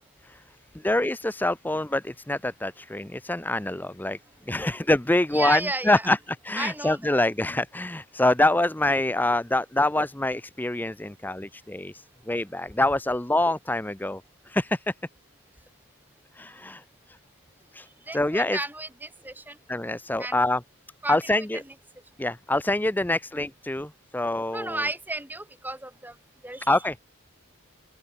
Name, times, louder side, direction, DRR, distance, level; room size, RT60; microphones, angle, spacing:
voice 1, 0.8-4.2 4.5-6.2 6.4-14.2 14.5-14.8 16.4-16.8 17.7-17.9 18.1-18.6 19.7-20.6 21.1-21.6 22.2-24.8 26.7-26.9, left 1 dB, 10° left, 0.6 m, -25 dB
voice 2, 5.3-6.1 6.6-7.1 18.1-19.6 20.2-20.4 21.0-21.7 24.5-26.2 26.4-26.8, right 2 dB, 10° right, 7.6 m, -33 dB
open air
head